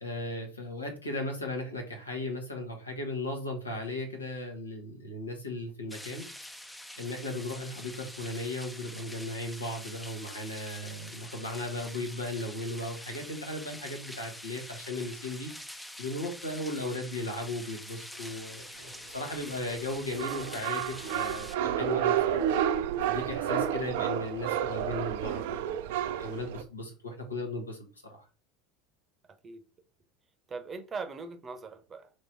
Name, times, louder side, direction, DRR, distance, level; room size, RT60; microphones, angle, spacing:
voice 1, 0.0-6.2 7.0-15.5 16.0-22.4 22.7-25.8 26.1-27.8 28.1-28.2, left 1 dB, 90° left, 1.2 m, -36 dB
sound 1, 5.9-21.6, left 1 dB, 5° left, 0.5 m, -45 dB
sound 2, 19.2-26.6, right 10 dB, 65° right, 0.4 m, -30 dB
voice 2, 30.5-32.1, right 4 dB, 25° right, 0.8 m, -40 dB
3.1 x 3.0 x 4.2 m
figure-of-eight pair, 80°, 0 cm